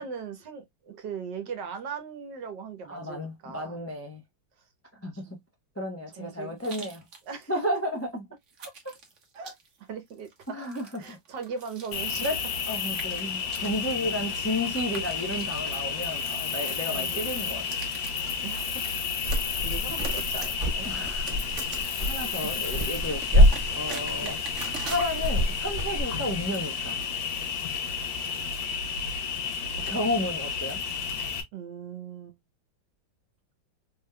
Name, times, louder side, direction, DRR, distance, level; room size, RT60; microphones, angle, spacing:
voice 1, 0.0-3.8 5.1-5.3 6.2-6.5 7.2-7.6 9.3-9.5 9.8-10.6 11.0-12.3 14.0-14.2 16.9-17.5 18.4-18.8 19.1-20.9 22.2-22.5 24.2-24.4 28.2-28.6 31.5-32.4, right 6 dB, 70° right, 1.6 m, -39 dB
voice 2, 2.9-4.2 5.0-5.3 5.8-7.0 7.5-8.0 10.5-11.2 12.2-12.4 12.7-17.6 20.8-21.3 21.8-24.4 24.8-27.0 29.9-30.8, left 1 dB, 20° left, 0.3 m, -32 dB
sound 1, 6.6-7.5 7.8-7.9 8.5-9.8 10.1-12.4 12.9-15.9 16.2-16.9 17.3-18.2 19.2-20.5 20.7-22.0 23.0-25.1 25.9-26.0, right 5 dB, 45° right, 1.1 m, -43 dB
Cricket, 11.9-31.4, left 6 dB, 80° left, 1.7 m, -32 dB
sound 2, 19.2-26.0, equal, 30° right, 1.9 m, -26 dB
4.0 x 3.4 x 2.2 m
omnidirectional pair, 2.0 m